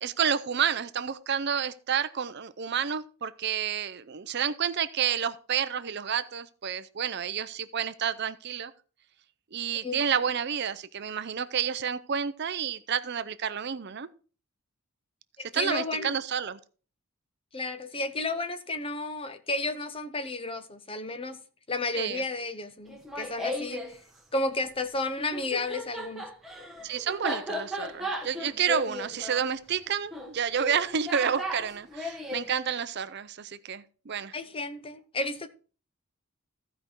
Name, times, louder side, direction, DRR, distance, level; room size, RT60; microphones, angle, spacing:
voice 1, 0.0-8.7 9.5-14.1 15.4-16.6 21.9-22.2 26.8-34.3, right 7 dB, 50° right, 0.5 m, -30 dB
voice 2, 15.4-16.1 17.5-21.4 21.7-24.0 24.3-26.3 34.3-35.5, left 2 dB, 25° left, 0.7 m, -32 dB
Laughter, 22.9-23.9 25.2-32.5, left 1 dB, ahead, 1.2 m, -36 dB
14.5 x 5.1 x 4.5 m
head